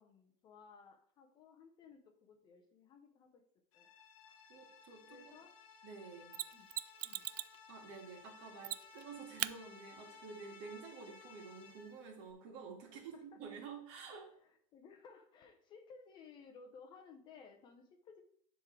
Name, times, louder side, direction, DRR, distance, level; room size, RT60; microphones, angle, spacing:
voice 1, 0.0-3.4 3.7-3.9 5.1-5.5 6.5-6.8 7.0-7.3 12.8-13.4 14.4-18.2, left 5 dB, 25° left, 6 dB, 0.7 m, -58 dB
sound 1, 3.7-12.2, left 6 dB, 55° left, 1.5 m, -58 dB
voice 2, 4.3-5.4 5.8-6.3 7.7-14.3, right 5 dB, 50° right, 1 dB, 1.9 m, -50 dB
Mechanisms, 6.3-7.6 8.6-9.0 9.4-9.5 12.3-12.4, right 14 dB, 85° right, 0.4 m, -40 dB
11.0 x 3.7 x 3.3 m, 0.62 s
supercardioid pair, 155°, 19 cm